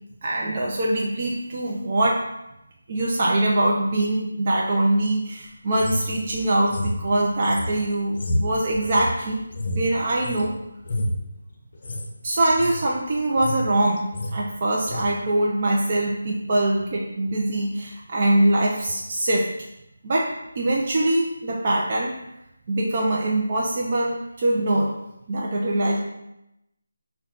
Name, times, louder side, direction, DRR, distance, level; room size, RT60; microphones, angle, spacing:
voice 1, 0.2-2.2 2.9-9.4 9.7-10.5 12.2-14.0 14.3-19.5 20.0-20.3 20.6-22.1 22.7-24.9 25.3-26.0, right 1 dB, 40° right, -3 dB, 0.4 m, -23 dB
sound 1, 5.7-10.5 10.8-11.2 11.7-12.1 12.4-12.8 13.2-13.7 14.0-14.4 14.9-15.1, left 1 dB, 45° left, 0.6 m, -29 dB
4.2 x 2.2 x 3.8 m, 0.88 s
figure-of-eight pair, 165°, 0 cm